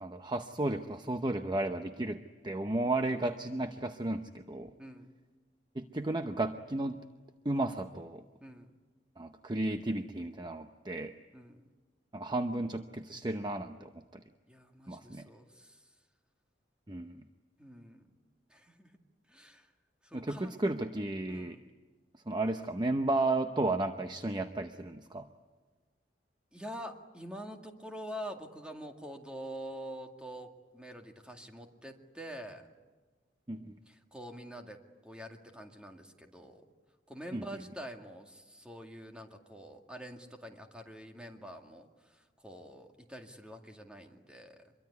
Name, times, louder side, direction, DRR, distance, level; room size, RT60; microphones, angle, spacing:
voice 1, 0.0-4.7 5.7-7.0 7.4-8.2 9.2-11.1 12.1-14.0 14.9-15.3 16.9-17.2 20.1-21.6 22.3-25.3 33.5-33.8 37.3-37.4, right 2 dB, 25° right, 7 dB, 0.8 m, -33 dB
voice 2, 4.8-5.1 8.4-8.8 11.3-11.7 14.5-15.9 17.6-18.2 18.5-19.0 19.3-19.7 20.0-20.5 21.3-21.7 26.5-32.7 33.9-36.6 37.1-44.7, equal, 5° right, 3 dB, 2.1 m, -46 dB
25.0 x 23.0 x 9.6 m, 1.3 s
head